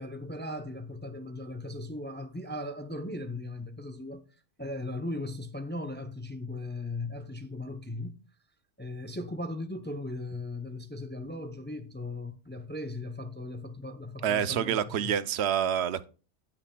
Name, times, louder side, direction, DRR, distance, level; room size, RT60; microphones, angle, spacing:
voice 1, 0.0-4.2 4.6-8.2 8.8-15.1, left 2 dB, 20° left, 0.3 m, -38 dB
voice 2, 14.2-16.0, right 9 dB, 70° right, 0.8 m, -27 dB
17.0 x 5.8 x 2.2 m
omnidirectional pair, 1.2 m